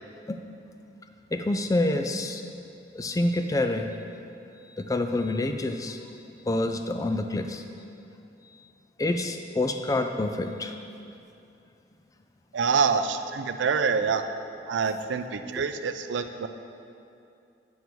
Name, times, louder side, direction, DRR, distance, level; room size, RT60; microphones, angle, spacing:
voice 1, 1.3-2.4 2.9-4.0 4.8-6.0 6.5-7.6 9.0-10.7, left 2 dB, 20° left, 6 dB, 0.3 m, -27 dB
voice 2, 12.5-14.2 14.7-16.5, right 5 dB, 75° right, 9 dB, 0.4 m, -26 dB
9.2 x 5.4 x 4.6 m, 2.6 s
head